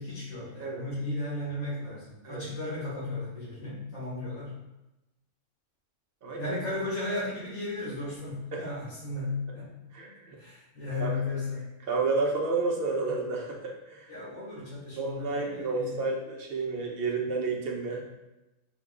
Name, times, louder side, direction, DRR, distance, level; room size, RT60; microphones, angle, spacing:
voice 1, 0.0-4.5 6.4-9.7 10.4-11.7 14.1-16.0, left 2 dB, 75° left, -9 dB, 1.9 m, -35 dB
voice 2, 6.2-6.5 8.5-8.6 9.9-10.4 11.0-11.1 11.9-14.1 15.0-18.0, right 3 dB, 50° right, -1 dB, 0.9 m, -30 dB
4.6 x 2.3 x 3.6 m, 0.97 s
omnidirectional pair, 1.4 m